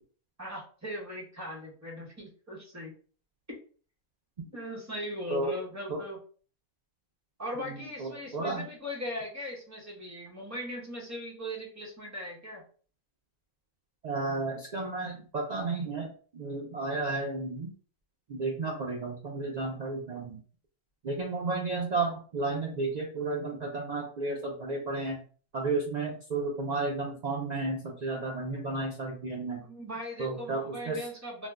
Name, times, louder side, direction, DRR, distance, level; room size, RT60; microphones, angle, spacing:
voice 1, 0.4-2.9 3.5-3.6 4.5-6.2 7.4-12.6 29.6-31.5, equal, 15° right, -3 dB, 0.7 m, -39 dB
voice 2, 8.0-8.7 14.0-17.7 18.3-20.4 21.0-25.2 25.5-29.6 30.2-31.1, right 3 dB, 70° right, -1 dB, 0.4 m, -32 dB
2.5 x 2.1 x 3.4 m, 0.42 s
omnidirectional pair, 1.3 m